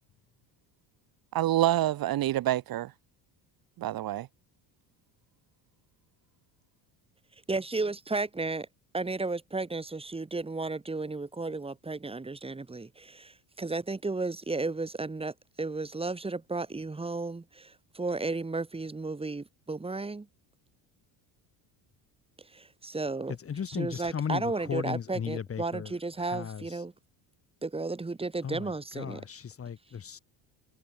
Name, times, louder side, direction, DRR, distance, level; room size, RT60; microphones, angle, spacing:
voice 1, 1.3-2.9 3.8-4.3, right 14 dB, 50° right, 1.9 m, -27 dB
voice 2, 7.5-8.7 8.9-20.3 22.5-23.4 23.7-26.9 27.6-29.2, right 3 dB, 15° right, 2.4 m, -33 dB
voice 3, 23.4-24.4 24.7-25.9 26.3-26.6 28.4-28.7 28.9-30.2, left 7 dB, 30° left, 2.7 m, -35 dB
cardioid pair, 120°, 44 cm